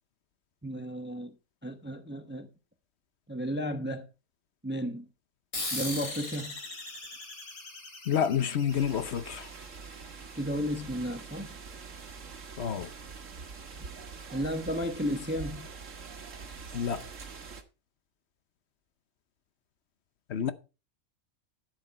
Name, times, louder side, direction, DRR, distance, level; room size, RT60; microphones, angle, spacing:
voice 1, 0.6-1.3 1.6-2.5 3.3-4.1 4.6-5.1 5.7-6.6 10.3-11.6 14.3-15.7, equal, 10° right, 0.7 m, -33 dB
sound 1, 5.5-10.5, left 2 dB, 85° left, 3.6 m, -40 dB
voice 2, 8.1-9.5 12.6-12.9 16.7-17.0 20.3-20.5, left 8 dB, 55° left, 0.9 m, -29 dB
sound 2, 8.7-17.6, right 5 dB, 65° right, 1.7 m, -44 dB
11.5 x 8.1 x 4.2 m
omnidirectional pair, 1.4 m